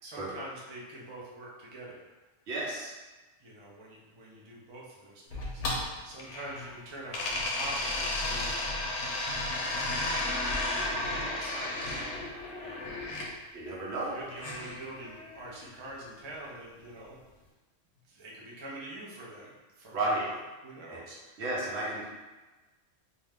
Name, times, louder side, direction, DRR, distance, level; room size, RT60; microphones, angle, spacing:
voice 1, 0.0-2.1 2.7-2.9 3.4-5.6 6.0-8.6 9.5-10.2 11.0-12.1 12.6-13.5 13.9-17.2 18.0-21.4 21.6-22.0, right 1 dB, 45° right, -4 dB, 0.3 m, -45 dB
voice 2, 2.5-2.9 13.5-14.2 19.9-20.2 20.9-21.0 21.4-22.0, right 2 dB, 65° right, -4 dB, 1.0 m, -32 dB
sound 1, 5.3-6.7 7.1-13.3 14.4-15.5, left 2 dB, 70° left, 0.9 m, -33 dB
2.6 x 2.2 x 3.3 m, 1.2 s
omnidirectional pair, 1.3 m